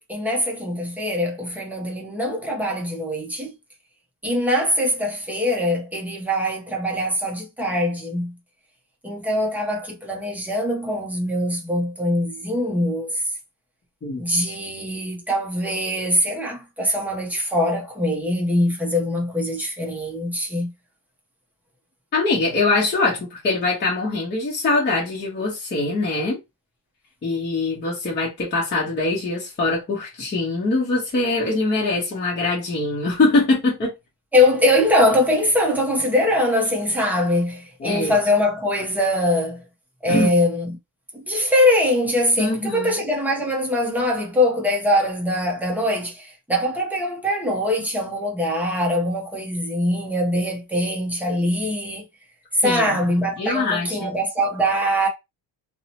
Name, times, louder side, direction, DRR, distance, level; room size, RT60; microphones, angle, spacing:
voice 1, 0.1-3.6 4.2-8.4 9.0-13.2 14.2-20.7 34.3-39.6 40.0-40.8 41.1-52.0 52.5-55.1, left 1 dB, 5° right, 0.5 m, -22 dB
voice 2, 22.1-26.4 27.2-33.9 37.8-38.1 40.1-40.3 42.4-43.0 52.6-53.1 53.4-54.1, left 3 dB, 25° left, 0.8 m, -23 dB
2.7 x 2.1 x 2.8 m
cardioid pair, 160°, 44 cm